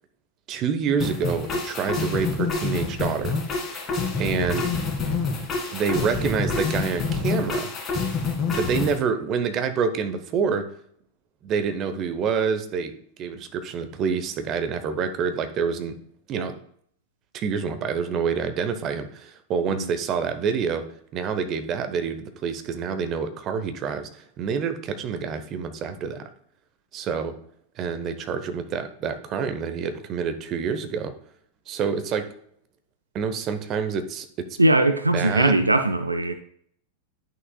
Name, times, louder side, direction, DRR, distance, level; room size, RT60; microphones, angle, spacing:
voice 1, 0.5-3.3 4.2-4.7 5.7-7.7 8.5-10.7 11.4-12.9 13.2-16.0 16.3-16.6 17.3-20.9 21.1-26.3 26.9-27.3 27.8-31.1 31.7-32.3 33.1-34.5 35.1-35.7, right 6 dB, 35° right, 0.9 m, -27 dB
sound 1, 1.0-9.0, left 4 dB, 25° left, 1.9 m, -27 dB
voice 2, 34.6-36.3, right 1 dB, 80° right, 0.4 m, -20 dB
11.0 x 6.2 x 2.3 m
figure-of-eight pair, 90°, 0 cm